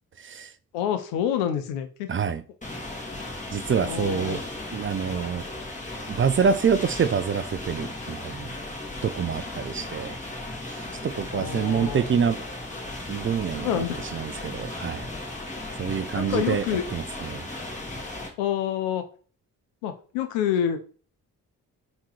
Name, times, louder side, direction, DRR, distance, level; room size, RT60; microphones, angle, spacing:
voice 1, 0.2-0.5 2.1-2.4 3.5-4.4 4.7-5.4 6.1-8.5 9.0-10.1 10.7-10.8 11.0-12.4 13.1-13.8 14.1-15.1 15.8-16.7 16.9-17.4, right 6 dB, 30° right, 0.4 m, -26 dB
voice 2, 0.7-2.1 3.8-4.4 11.3-12.2 13.6-14.0 16.1-16.8 18.4-19.0 19.8-20.8, left 9 dB, 85° left, 0.7 m, -27 dB
sound 1, 2.6-18.3, left 2 dB, 15° left, 1.8 m, -36 dB
3.7 x 3.0 x 4.4 m
hypercardioid pair, 40°, 42 cm